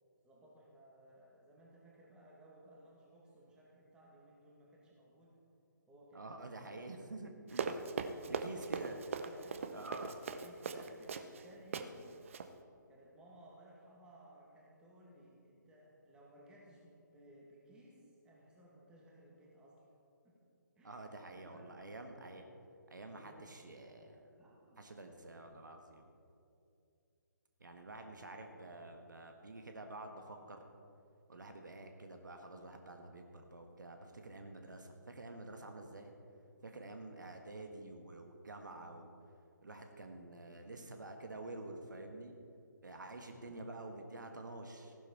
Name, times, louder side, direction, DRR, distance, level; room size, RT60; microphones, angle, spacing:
voice 1, 0.2-5.4 5.9-6.3 7.8-8.8 9.3-9.8 10.4-12.1 12.9-19.9 20.2-20.4 20.8-21.7 23.0-23.5 24.4-24.9 36.5-36.8 42.8-43.6, right 1 dB, 10° right, -3 dB, 2.0 m, -60 dB
voice 2, 6.1-7.8 8.4-9.0 9.7-10.2 20.8-22.5 22.9-24.3 24.8-26.1 27.6-30.6 31.3-36.1 36.6-39.1 39.6-42.3 42.8-44.9, right 2 dB, 65° right, 4 dB, 1.4 m, -49 dB
Run, 7.5-11.4 11.7-11.9 12.2-12.5, right 5 dB, 40° right, 0.7 m, -40 dB
15.5 x 12.0 x 4.2 m, 2.6 s
figure-of-eight pair, 140°, 11 cm